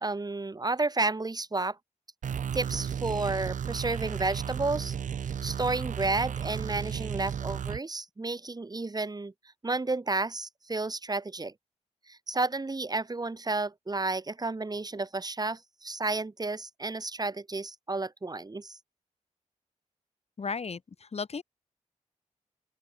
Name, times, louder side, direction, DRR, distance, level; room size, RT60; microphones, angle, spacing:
voice 1, 0.0-1.8 2.5-4.9 5.4-9.3 9.6-11.5 12.1-18.8, right 3 dB, 30° right, 1.4 m, -31 dB
sound 1, 2.2-7.8, right 8 dB, 80° right, 1.2 m, -34 dB
voice 2, 20.4-21.4, left 5 dB, 55° left, 1.7 m, -35 dB
open air
cardioid pair, 55°, 13 cm